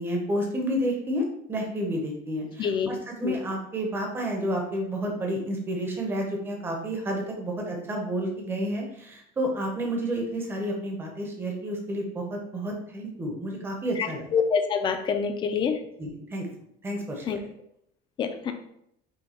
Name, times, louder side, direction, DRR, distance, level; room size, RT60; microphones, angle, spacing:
voice 1, 0.0-14.3 16.0-16.5 16.8-17.2, right 1 dB, 10° right, 0 dB, 0.7 m, -30 dB
voice 2, 2.6-2.9 3.2-3.4 14.0-15.8 17.3-17.4 18.2-18.5, left 6 dB, 25° left, 7 dB, 0.4 m, -26 dB
5.6 x 2.2 x 4.2 m, 0.74 s
cardioid pair, 180°, 20 cm